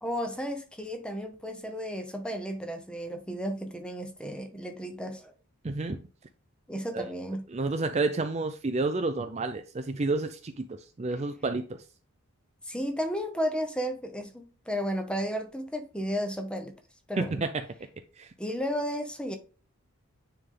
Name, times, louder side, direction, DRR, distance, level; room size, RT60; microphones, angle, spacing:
voice 1, 0.0-5.3 6.7-7.4 12.7-16.7 17.1-17.4 18.4-19.4, equal, 5° left, 0.8 m, -33 dB
voice 2, 5.6-6.0 6.9-7.1 7.5-11.6 17.2-17.6 18.2-18.3, right 3 dB, 30° right, 0.4 m, -30 dB
9.5 x 3.6 x 3.8 m
head